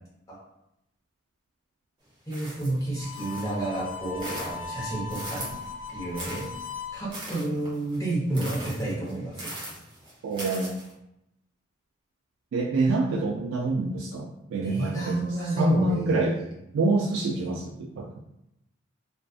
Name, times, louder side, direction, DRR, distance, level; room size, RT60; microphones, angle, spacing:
voice 1, 2.3-5.5 5.9-6.4 6.9-9.3 14.5-16.5 17.3-17.5, right 2 dB, 15° left, -7 dB, 0.7 m, -30 dB
sound 1, 2.3-3.6 4.0-5.7 6.1-10.9, right 1 dB, 25° right, 0.6 m, -40 dB
Harmonica, 2.9-7.0, left 5 dB, 90° left, 0.6 m, -38 dB
voice 2, 10.2-10.7 12.5-15.2 15.6-16.3 16.7-18.1, right 2 dB, 80° right, -2 dB, 0.3 m, -26 dB
2.4 x 2.4 x 2.3 m, 0.84 s
head